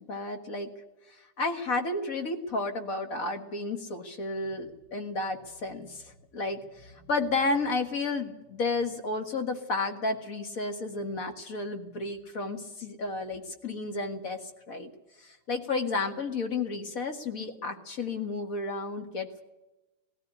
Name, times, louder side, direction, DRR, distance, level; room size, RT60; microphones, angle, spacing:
voice 1, 0.1-0.7 1.1-14.9 15.2-19.4, left 3 dB, 40° left, 8 dB, 1.3 m, -32 dB
19.0 x 14.0 x 9.8 m, 1.0 s
omnidirectional pair, 3.4 m